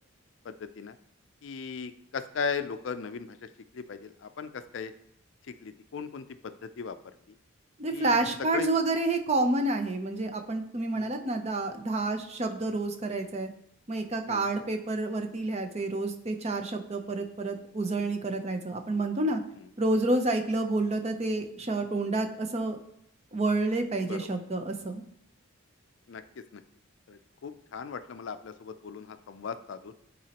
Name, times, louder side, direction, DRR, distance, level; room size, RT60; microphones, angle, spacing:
voice 1, 0.4-1.0 1.4-3.4 3.7-4.9 5.5-7.0 7.9-8.2 8.5-8.7 10.9-11.1 14.3-14.5 24.1-24.3 26.1-26.6 27.1-29.9, left 5 dB, 60° left, 10 dB, 0.4 m, -37 dB
voice 2, 7.8-13.5 13.9-19.4 19.8-22.8 23.3-25.0, right 2 dB, 30° right, 5 dB, 0.6 m, -29 dB
10.5 x 4.1 x 2.9 m, 0.73 s
head